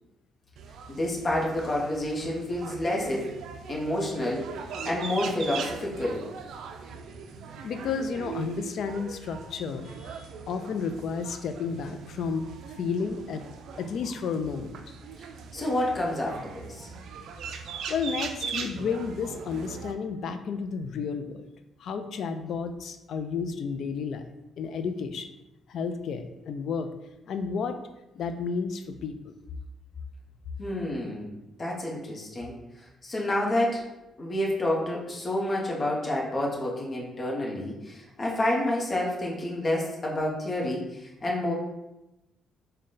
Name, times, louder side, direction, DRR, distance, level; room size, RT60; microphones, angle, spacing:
sound 1, 0.6-19.9, right 5 dB, 75° right, 0.3 m, -40 dB
voice 1, 0.9-3.3 3.7-4.5 4.8-6.2 15.5-16.9 30.6-31.3 31.6-32.5 33.0-33.9 34.2-41.5, left 1 dB, 35° left, -2 dB, 0.8 m, -29 dB
voice 2, 7.6-12.5 12.8-13.4 13.8-14.8 17.9-21.5 21.8-24.3 24.6-25.3 25.7-26.9 27.3-27.8 28.2-29.3, left 5 dB, 65° left, 8 dB, 0.3 m, -32 dB
3.7 x 2.2 x 3.8 m, 0.95 s
cardioid pair, 90°, 0 cm